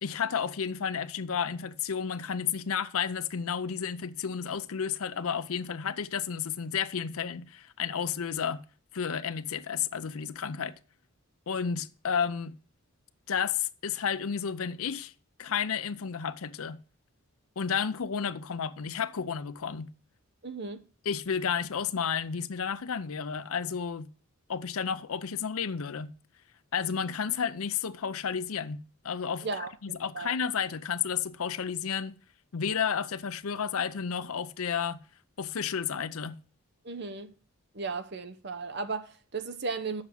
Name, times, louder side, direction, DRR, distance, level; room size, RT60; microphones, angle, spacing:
voice 1, 0.0-8.6 8.9-10.8 11.5-12.5 13.3-15.1 15.4-16.8 17.6-19.9 21.1-24.1 24.5-26.1 26.7-29.5 29.8-32.2 32.5-35.0 35.4-36.4, left 7 dB, 75° left, 0.6 m, -32 dB
voice 2, 20.4-20.9 29.4-30.3 36.8-37.3 37.7-40.0, right 4 dB, 50° right, 0.8 m, -36 dB
7.4 x 6.0 x 7.6 m
head